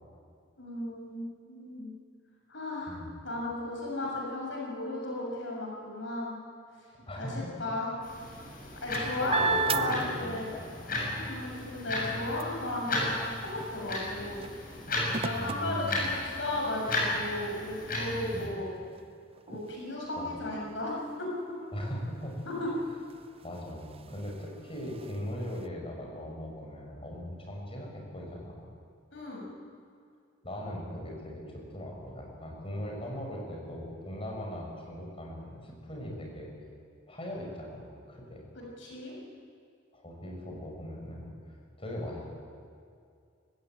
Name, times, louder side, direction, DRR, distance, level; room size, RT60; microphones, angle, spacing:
voice 1, 0.6-1.9 2.5-6.3 7.2-7.9 8.8-10.5 11.1-14.4 15.2-18.8 19.5-21.3 22.5-22.7 29.1-29.4 38.5-39.1, left 1 dB, 80° left, -2 dB, 6.5 m, -35 dB
voice 2, 2.9-3.2 7.1-7.3 8.7-8.8 9.2-10.9 15.4-16.0 18.3-18.6 20.2-20.4 21.7-22.4 23.4-28.6 30.4-36.5 37.1-38.4 39.9-41.3 41.8-42.3, equal, 30° left, -1 dB, 6.3 m, -39 dB
sound 1, 8.0-18.5, left 2 dB, 50° left, 7.6 m, -35 dB
sound 2, 8.4-10.8 11.2-16.6 17.3-17.4 17.7-25.7, right 5 dB, 30° right, 0.6 m, -39 dB
25.5 x 16.0 x 9.1 m, 2.3 s
head